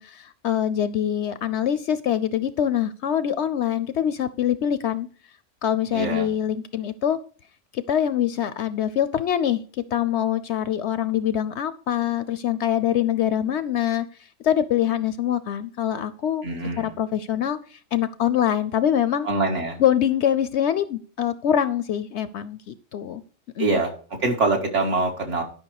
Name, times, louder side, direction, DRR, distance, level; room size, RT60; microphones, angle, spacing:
voice 1, 0.0-5.1 5.6-7.2 7.7-9.6 9.9-14.1 14.4-16.4 16.8-19.3 19.8-23.2 23.6-23.8, left 10 dB, 65° left, 14 dB, 0.8 m, -24 dB
voice 2, 5.9-6.3 16.4-16.9 19.2-19.8 23.6-23.9 24.2-25.4, right 3 dB, 60° right, 1 dB, 2.2 m, -24 dB
11.5 x 5.6 x 4.8 m, 0.41 s
omnidirectional pair, 1.4 m